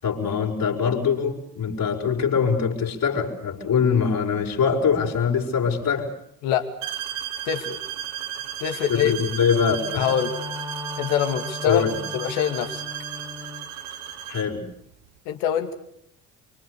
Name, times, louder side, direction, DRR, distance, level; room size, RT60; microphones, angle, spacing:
voice 1, 0.0-6.1 8.9-10.1 11.6-12.0 14.3-14.6, left 6 dB, 55° left, 0 dB, 6.1 m, -23 dB
sound 1, 6.8-14.6, right 10 dB, 80° right, 1.6 m, -34 dB
voice 2, 7.5-7.8 8.6-9.1 10.0-10.3 11.0-11.8 12.1-12.8 15.3-15.7, left 9 dB, 75° left, 7 dB, 2.5 m, -24 dB
Wind instrument woodwind instrument, 9.6-13.7, left 2 dB, 10° right, 2.9 m, -37 dB
25.0 x 25.0 x 6.9 m, 0.71 s
hypercardioid pair, 55°, 41 cm